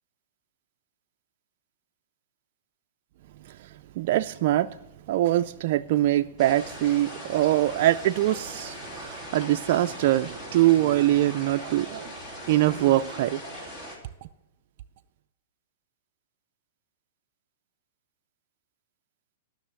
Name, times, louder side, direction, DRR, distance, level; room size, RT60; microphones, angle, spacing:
voice 1, 3.4-4.8 5.1-12.1 12.5-13.4, right 14 dB, 55° right, 0.3 m, -23 dB
sound 1, 6.4-14.0, equal, 15° left, 2.8 m, -40 dB
12.5 x 6.4 x 8.0 m
hypercardioid pair, 140°, 0 cm